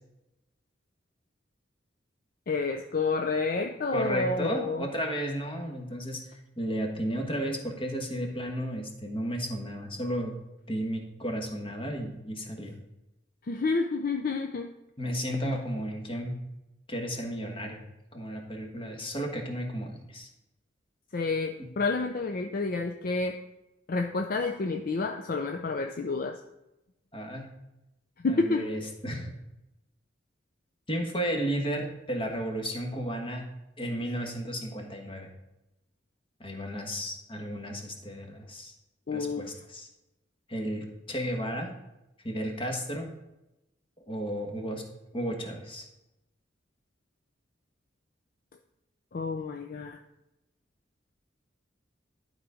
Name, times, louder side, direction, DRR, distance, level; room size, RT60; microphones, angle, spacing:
voice 1, 2.5-4.9 13.5-14.7 21.1-23.4 23.9-26.4 28.2-28.7 39.1-39.5 49.1-50.0, left 3 dB, 50° left, 5 dB, 0.5 m, -29 dB
voice 2, 3.9-6.2 6.6-10.4 10.7-12.8 15.0-16.4 16.9-17.8 18.1-20.3 27.1-27.5 28.3-29.3 30.9-33.4 33.8-35.3 36.4-38.7 39.1-39.9 40.5-41.7 42.2-43.1 44.1-44.8 45.1-45.9, equal, 30° left, 2 dB, 1.3 m, -33 dB
11.5 x 4.0 x 4.9 m, 0.93 s
head